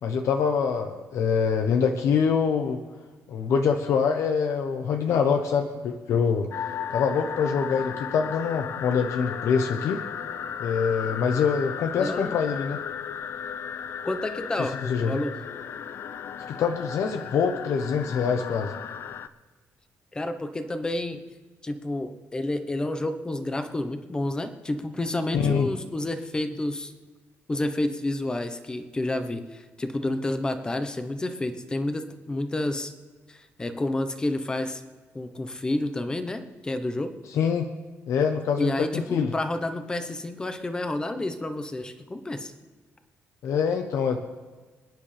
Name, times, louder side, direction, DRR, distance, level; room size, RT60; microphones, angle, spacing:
voice 1, 0.0-2.8 3.3-6.5 6.9-10.0 10.6-12.8 14.6-15.2 16.5-18.7 25.3-25.7 37.3-37.7 38.1-39.3 43.4-44.2, left 6 dB, 65° left, 5 dB, 1.0 m, -25 dB
sound 1, 6.5-19.3, left 8 dB, 50° left, 0.6 m, -35 dB
voice 2, 12.0-12.3 14.0-15.4 20.1-21.2 21.6-26.9 27.5-32.9 33.3-34.8 35.1-37.1 38.6-42.5, left 1 dB, 15° left, 8 dB, 1.0 m, -30 dB
26.5 x 9.7 x 3.4 m, 1.3 s
cardioid pair, 155°, 5 cm